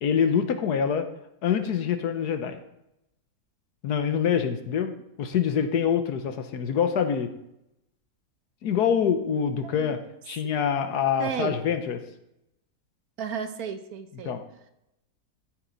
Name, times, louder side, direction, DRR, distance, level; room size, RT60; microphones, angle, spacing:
voice 1, 0.0-1.1 1.4-2.6 3.8-4.9 5.2-7.3 8.6-10.0 10.3-12.0 14.2-14.4, left 7 dB, 85° left, 8 dB, 1.5 m, -25 dB
voice 2, 9.6-10.0 11.2-11.6 13.2-14.3, right 7 dB, 70° right, 8 dB, 1.4 m, -33 dB
13.5 x 7.8 x 4.0 m, 0.84 s
omnidirectional pair, 1.7 m